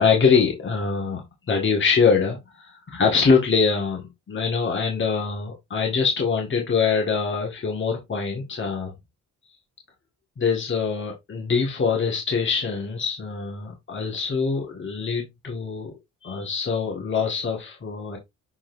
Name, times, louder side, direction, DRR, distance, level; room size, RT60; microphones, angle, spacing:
voice 1, 0.0-8.9 10.4-15.9 16.2-18.2, left 5 dB, 40° left, 1.9 m, -24 dB
7.0 x 5.0 x 2.6 m
cardioid pair, 90°, 30 cm